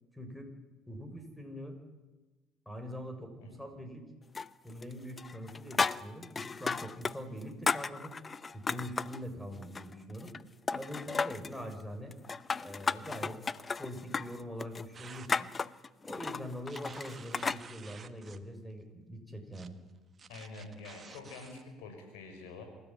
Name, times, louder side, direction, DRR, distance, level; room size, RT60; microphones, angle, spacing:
voice 1, 0.1-0.5 0.9-1.8 2.7-4.1 4.6-8.2 8.5-10.3 10.7-12.1 12.6-13.4 13.8-15.5 16.0-19.8, equal, 5° left, 6 dB, 6.1 m, -43 dB
sound 1, 4.3-4.9 5.2-7.2 7.4-9.2 9.6-10.4 10.7-11.6 12.1-17.6, left 4 dB, 30° left, 0.7 m, -34 dB
sound 2, 14.9-15.3 16.7-18.4 19.5-19.7 20.2-21.6, right 6 dB, 35° right, 1.6 m, -51 dB
voice 2, 20.3-22.6, left 3 dB, 85° left, 5 dB, 6.2 m, -47 dB
27.0 x 14.0 x 9.0 m, 1.2 s
supercardioid pair, 75°, 0 cm